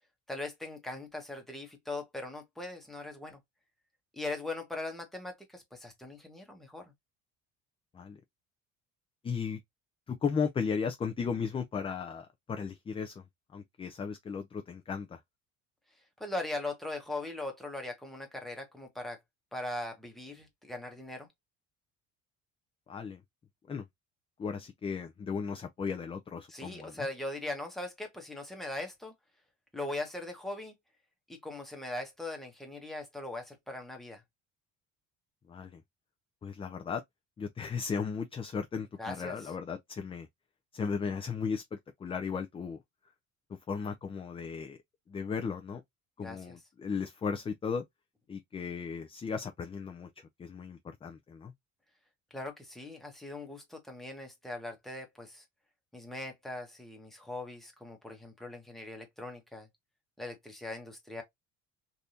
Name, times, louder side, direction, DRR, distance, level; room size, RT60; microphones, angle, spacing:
voice 1, 0.3-3.4 4.1-6.9 16.2-19.2 19.5-21.3 26.5-29.1 29.7-30.7 31.3-34.2 39.0-39.5 46.2-46.6 52.3-55.4 55.9-59.7 60.2-61.2, left 2 dB, ahead, 1.1 m, -40 dB
voice 2, 9.2-9.6 10.1-13.1 13.5-15.2 22.9-23.2 23.7-23.8 24.4-27.1 35.5-35.8 36.4-37.0 37.4-40.3 40.7-42.8 43.7-44.8 45.1-45.8 46.2-47.8 48.3-50.1 50.4-51.5, left 6 dB, 20° left, 0.4 m, -35 dB
3.4 x 2.6 x 2.7 m
cardioid pair, 130°, 31 cm